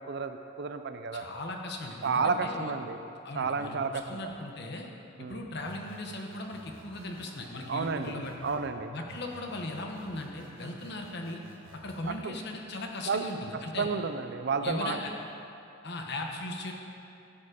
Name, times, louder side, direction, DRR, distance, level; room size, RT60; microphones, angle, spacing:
voice 1, 0.0-1.3 2.0-3.0 3.3-4.3 5.2-5.4 7.7-8.9 12.0-12.3 13.1-13.2 13.8-15.0, right 4 dB, 55° right, 9 dB, 0.5 m, -31 dB
voice 2, 1.1-2.7 3.2-4.9 5.2-8.3 8.9-11.4 11.7-13.9 14.6-15.1 15.8-16.7, left 2 dB, 55° left, 2 dB, 1.2 m, -38 dB
sound 1, 5.7-8.7 9.1-12.1, right 2 dB, 70° right, 1.4 m, -51 dB
13.5 x 7.4 x 5.1 m, 2.7 s
head